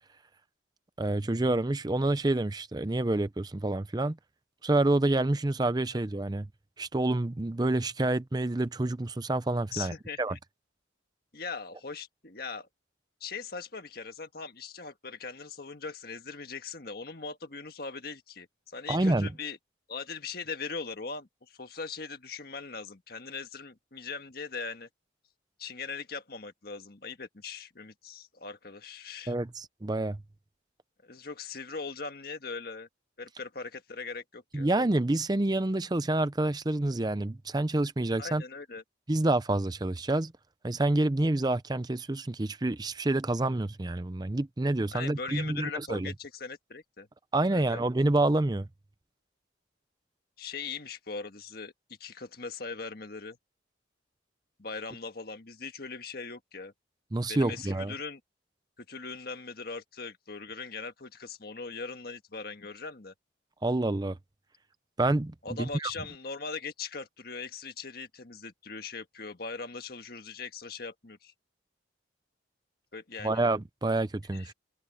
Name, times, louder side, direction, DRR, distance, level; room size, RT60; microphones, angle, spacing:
voice 1, 1.0-4.2 4.6-6.5 6.8-9.9 10.2-10.4 18.9-19.3 29.3-30.2 34.5-38.4 39.1-40.3 40.6-46.1 47.3-48.7 57.1-57.9 63.6-64.2 65.0-65.9 73.2-74.5, right 2 dB, 20° right, 0.5 m, -28 dB
voice 2, 9.7-10.4 11.3-12.7 13.2-19.6 19.9-24.9 25.6-29.3 31.0-32.9 33.2-34.7 38.2-38.8 44.9-47.1 47.5-47.8 50.4-53.4 54.6-56.7 57.3-58.2 58.8-63.1 65.4-71.3 72.9-73.4 74.3-74.5, left 4 dB, 55° left, 1.6 m, -40 dB
head